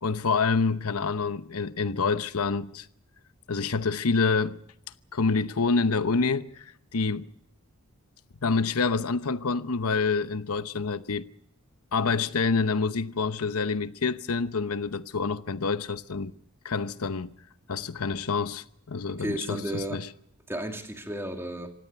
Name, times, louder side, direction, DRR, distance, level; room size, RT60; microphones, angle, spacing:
voice 1, 0.0-2.9 3.5-4.6 5.1-6.7 6.9-7.3 8.4-11.3 11.9-16.3 16.6-17.3 17.7-20.1, left 4 dB, 80° left, 0.9 m, -27 dB
voice 2, 19.1-20.0 20.5-21.7, right 1 dB, 10° right, 2.3 m, -33 dB
25.5 x 17.5 x 6.9 m
head